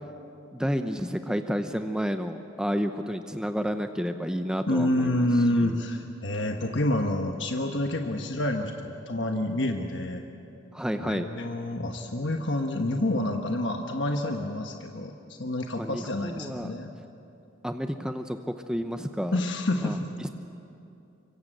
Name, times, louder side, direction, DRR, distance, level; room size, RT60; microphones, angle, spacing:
voice 1, 0.5-5.2 5.6-5.8 10.7-11.3 15.8-16.7 17.6-19.3 19.8-20.0, equal, 5° right, 7 dB, 0.7 m, -30 dB
voice 2, 4.7-10.2 11.0-16.9 19.3-20.3, left 1 dB, 60° left, 3 dB, 1.3 m, -28 dB
25.5 x 24.0 x 7.9 m, 2.7 s
head